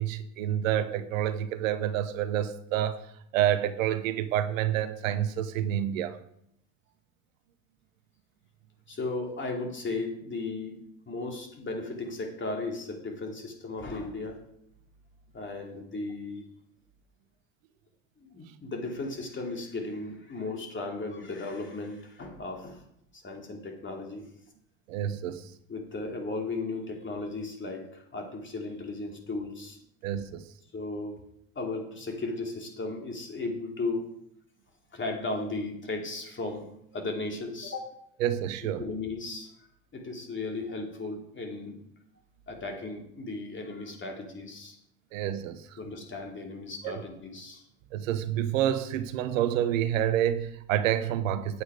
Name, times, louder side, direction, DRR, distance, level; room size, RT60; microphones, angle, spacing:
voice 1, 0.0-6.2 24.9-25.5 30.0-30.5 38.2-38.8 45.1-45.8 46.8-47.0 47.9-51.6, right 11 dB, 80° right, 0.8 m, -28 dB
voice 2, 8.9-10.8 11.1-14.4 15.3-16.4 18.2-22.8 23.1-24.3 25.7-29.8 30.7-31.2 31.5-34.1 34.9-36.7 36.9-37.9 38.8-41.8 42.5-44.8 45.8-47.6, left 3 dB, 30° left, 2.8 m, -36 dB
8.7 x 8.3 x 4.8 m
hypercardioid pair, 70°, 39 cm